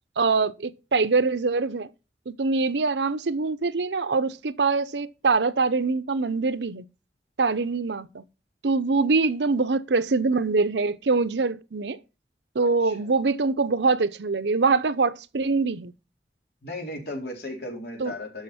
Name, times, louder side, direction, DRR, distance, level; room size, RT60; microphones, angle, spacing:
voice 1, 0.2-1.9 2.3-6.8 7.4-8.2 8.6-12.0 12.5-15.9 18.0-18.1, right 4 dB, 85° right, 0.7 m, -24 dB
voice 2, 12.8-13.2 16.6-18.4, left 1 dB, 70° left, 3.8 m, -36 dB
12.0 x 6.4 x 4.2 m
head